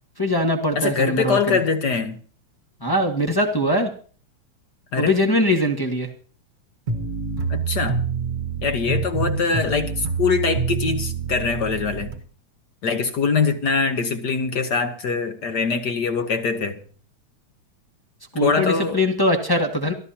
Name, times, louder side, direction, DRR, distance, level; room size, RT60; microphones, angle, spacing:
voice 1, 0.2-1.6 2.8-3.9 5.0-6.1 18.3-19.9, left 1 dB, 25° left, 0.5 m, -21 dB
voice 2, 0.7-2.2 4.9-5.1 7.5-8.0 8.6-12.1 12.8-16.8 18.4-19.0, left 5 dB, 60° left, 1.0 m, -23 dB
sound 1, 6.9-12.2, right 5 dB, 40° right, 1.3 m, -26 dB
24.0 x 14.0 x 2.9 m
omnidirectional pair, 3.3 m